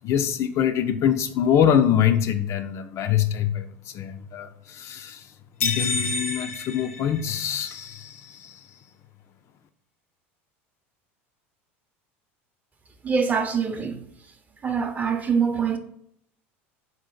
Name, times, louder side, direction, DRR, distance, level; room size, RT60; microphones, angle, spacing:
voice 1, 0.0-5.3 5.6-8.8, left 9 dB, 45° left, 0.4 m, -24 dB
sound 1, 5.6-7.7, left 4 dB, 85° left, 0.8 m, -29 dB
voice 2, 13.0-14.0 14.6-15.8, right 6 dB, 25° right, 0.6 m, -24 dB
3.8 x 2.5 x 3.8 m
hypercardioid pair, 85°, 7 cm